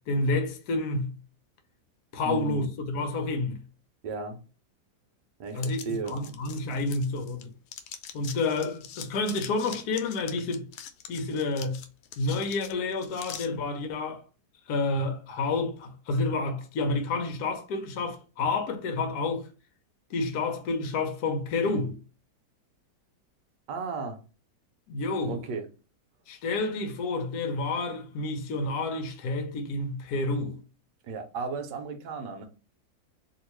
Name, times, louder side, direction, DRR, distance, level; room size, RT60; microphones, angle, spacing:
voice 1, 0.1-1.1 2.1-3.6 5.5-5.8 6.1-7.5 8.1-10.7 11.1-11.8 12.2-14.2 14.7-19.5 20.1-22.0 24.9-25.4 26.3-30.6, left 3 dB, 65° left, 1.1 m, -29 dB
voice 2, 2.2-2.7 4.0-4.4 5.4-6.2 23.7-24.2 25.3-25.6 31.0-32.5, right 4 dB, 70° right, 1.3 m, -34 dB
sound 1, 5.6-7.4 7.7-13.5, left 9 dB, 85° left, 1.3 m, -43 dB
2.9 x 2.8 x 3.0 m
omnidirectional pair, 2.1 m